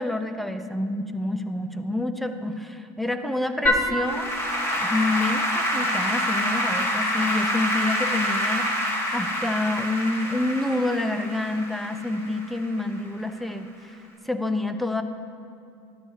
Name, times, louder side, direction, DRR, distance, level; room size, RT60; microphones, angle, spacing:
voice 1, 0.0-4.3 4.8-13.9 14.3-15.0, left 2 dB, ahead, 8 dB, 0.3 m, -28 dB
Applause / Keyboard (musical), 3.7-13.0, equal, 20° left, 1.3 m, -26 dB
12.5 x 11.0 x 2.8 m, 2.6 s
cardioid pair, 165°, 12 cm